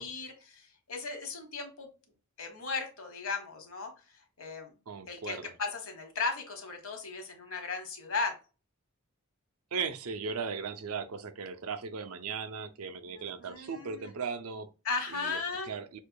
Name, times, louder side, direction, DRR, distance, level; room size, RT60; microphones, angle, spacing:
voice 1, 0.0-1.9 2.4-3.9 4.4-4.7 5.1-8.3 13.1-14.1 14.8-15.7, left 4 dB, 65° left, 1.2 m, -36 dB
voice 2, 4.9-5.4 9.7-14.7 15.1-15.4 15.7-16.0, right 5 dB, 75° right, 0.6 m, -37 dB
6.3 x 2.9 x 2.2 m
head